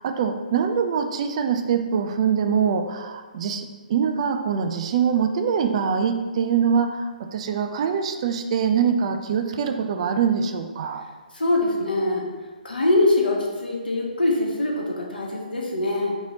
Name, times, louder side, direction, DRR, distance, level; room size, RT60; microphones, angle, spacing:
voice 1, 0.0-11.0, right 7 dB, 40° right, 7 dB, 0.4 m, -24 dB
voice 2, 11.3-12.3 12.6-16.2, left 2 dB, 75° left, -2 dB, 1.1 m, -23 dB
4.0 x 3.0 x 4.0 m, 1.3 s
figure-of-eight pair, 135°, 5 cm